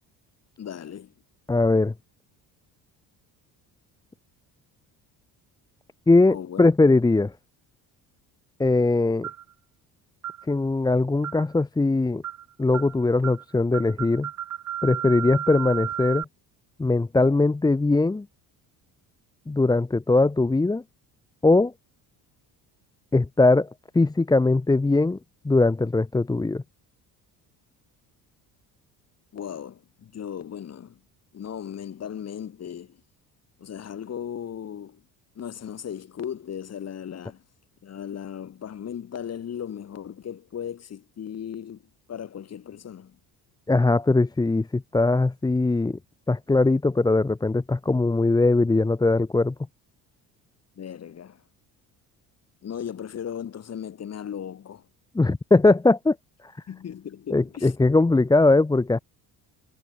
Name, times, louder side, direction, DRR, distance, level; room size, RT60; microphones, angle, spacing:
voice 1, 0.6-1.1 6.3-6.6 29.3-31.0 31.3-33.0 33.6-35.0 35.4-37.4 37.8-41.8 42.1-43.2 50.8-51.4 52.6-54.8 56.7-57.7, left 9 dB, 40° left, 7.9 m, -36 dB
voice 2, 1.5-1.9 6.1-7.3 8.6-9.3 10.5-12.2 12.6-14.3 14.8-16.3 16.8-18.3 19.5-20.8 21.4-21.7 23.1-23.7 23.9-25.2 25.4-26.6 43.7-46.0 46.3-49.5 55.1-56.2 56.4-56.5 57.3-59.0, left 2 dB, 10° left, 1.1 m, -20 dB
sound 1, 9.2-9.5 10.2-10.4 11.2-11.5 12.2-12.4 12.7-12.9 13.2-13.4 13.7-16.2, right 11 dB, 50° right, 3.3 m, -33 dB
cardioid pair, 135°, 37 cm